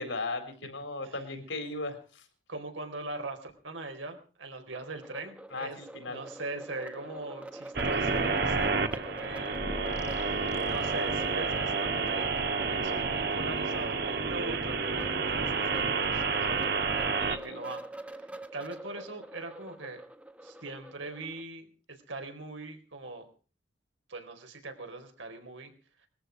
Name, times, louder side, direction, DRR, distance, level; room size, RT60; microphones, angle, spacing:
voice 1, 0.0-2.2 5.5-6.2 17.2-17.6, left 3 dB, 80° left, 8 dB, 4.0 m, -37 dB
voice 2, 2.5-5.8 6.1-9.6 10.4-17.8 18.2-20.0 20.4-23.3 24.1-25.7, right 2 dB, 85° right, 5 dB, 4.2 m, -41 dB
sound 1, 4.7-21.4, right 1 dB, 5° right, 0.9 m, -46 dB
sound 2, 7.7-17.4, right 4 dB, 55° right, 1.4 m, -30 dB
sound 3, 9.5-11.6, left 1 dB, 35° left, 1.3 m, -43 dB
21.5 x 14.0 x 4.7 m, 0.39 s
head